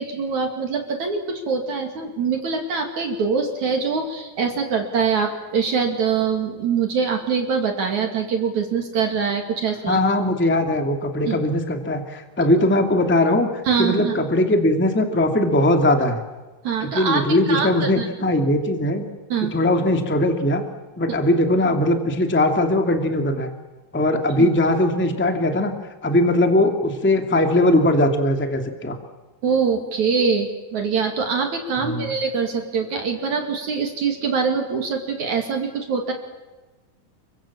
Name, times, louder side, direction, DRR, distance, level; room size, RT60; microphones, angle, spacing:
voice 1, 0.0-10.0 11.3-11.4 13.7-14.2 16.6-17.2 17.5-18.1 19.3-19.5 24.4-24.5 29.4-36.1, right 5 dB, 55° right, 3 dB, 3.7 m, -23 dB
voice 2, 9.9-13.5 13.8-16.2 16.8-19.0 19.5-20.6 21.0-23.5 23.9-25.7 26.0-29.0 31.8-32.1, left 1 dB, 5° left, 5 dB, 1.7 m, -20 dB
30.0 x 24.0 x 7.4 m, 1.2 s
omnidirectional pair, 4.1 m